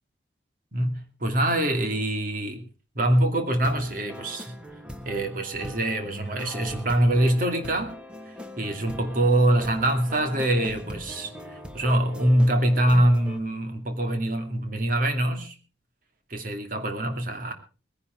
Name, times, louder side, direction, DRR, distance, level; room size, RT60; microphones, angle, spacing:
voice 1, 0.7-2.7 3.0-4.6 5.0-8.0 8.6-15.6 16.3-17.5, right 1 dB, 45° right, 6 dB, 2.4 m, -24 dB
sound 1, 3.5-13.4, equal, 5° right, 1.3 m, -41 dB
20.5 x 10.5 x 4.5 m, 0.35 s
head